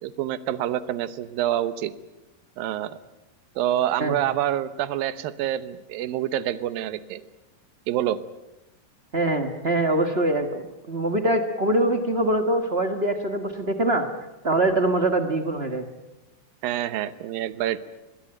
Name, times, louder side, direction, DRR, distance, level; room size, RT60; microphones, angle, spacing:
voice 1, 0.0-1.9 2.6-3.0 3.6-7.2 7.9-8.2 16.6-17.8, right 12 dB, 80° right, 14 dB, 2.7 m, -27 dB
voice 2, 9.1-14.1 14.4-15.8, right 1 dB, 60° right, 6 dB, 0.6 m, -23 dB
24.5 x 20.5 x 9.0 m, 1.0 s
omnidirectional pair, 4.1 m